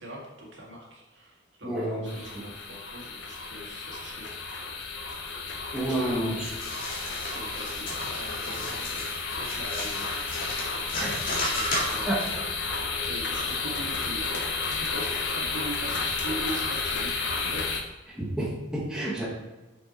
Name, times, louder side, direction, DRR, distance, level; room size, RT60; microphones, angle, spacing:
voice 1, 0.0-4.2 4.5-4.7 5.8-6.4 7.0-10.1 11.4-12.1 12.7-17.8 18.9-19.3, right 1 dB, 70° right, -3 dB, 2.1 m, -42 dB
voice 2, 1.6-2.5 5.7-6.5 11.0-11.3 12.1-12.2 15.0-15.2 18.1-19.3, right 1 dB, 5° right, -6 dB, 1.4 m, -30 dB
sound 1, 2.1-17.8, left 4 dB, 65° left, 1.0 m, -32 dB
sound 2, 6.4-12.3, left 1 dB, 45° left, 2.1 m, -34 dB
6.5 x 6.2 x 4.2 m, 1.1 s
head